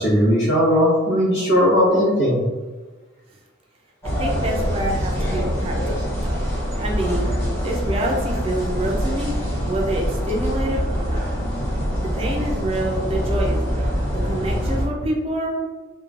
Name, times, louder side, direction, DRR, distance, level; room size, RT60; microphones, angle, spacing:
voice 1, 0.0-2.4, equal, 85° left, -11 dB, 1.0 m, -17 dB
sound 1, 4.0-14.9, equal, 10° left, 0.7 m, -24 dB
voice 2, 4.2-6.4 6.8-7.3 7.6-11.2 12.0-15.6, right 1 dB, 30° right, 0 dB, 0.3 m, -27 dB
3.0 x 2.2 x 2.4 m, 1.3 s
head